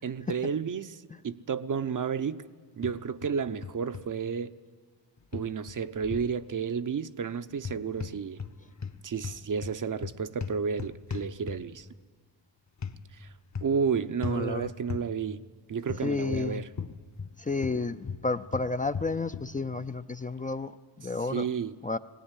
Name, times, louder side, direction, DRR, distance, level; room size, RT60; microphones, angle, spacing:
voice 1, 0.0-2.5 2.8-4.5 5.3-8.4 9.0-11.9 13.1-13.3 13.6-15.4 15.7-16.7 21.3-21.8, right 6 dB, 45° right, 0.8 m, -31 dB
sound 1, 2.8-3.3 3.6-4.1 5.3-6.3 7.6-8.5 8.8-11.8 12.8-13.0 13.5-13.8 14.2-14.4 14.9-15.1 15.9-17.3 17.6-19.5, left 5 dB, 40° left, 1.1 m, -37 dB
voice 2, 14.2-14.7 16.0-16.6 17.4-21.5 21.8-22.0, left 3 dB, 20° left, 0.5 m, -31 dB
19.5 x 17.0 x 9.8 m
cardioid pair, 70°, 44 cm